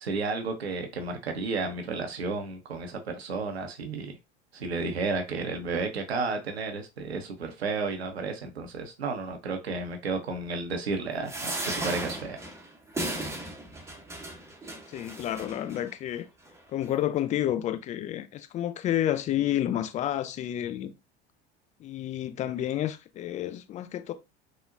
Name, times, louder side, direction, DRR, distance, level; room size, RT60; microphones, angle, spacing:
voice 1, 0.0-4.2 4.5-12.4, right 3 dB, 80° right, 0.6 m, -32 dB
sound 1, 11.3-15.8 16.5-16.6 16.8-16.9, right 1 dB, 10° right, 0.7 m, -35 dB
voice 2, 14.9-16.2 16.7-20.9 21.8-24.1, left 12 dB, 25° left, 0.3 m, -30 dB
3.7 x 2.1 x 2.4 m
figure-of-eight pair, 70°, 31 cm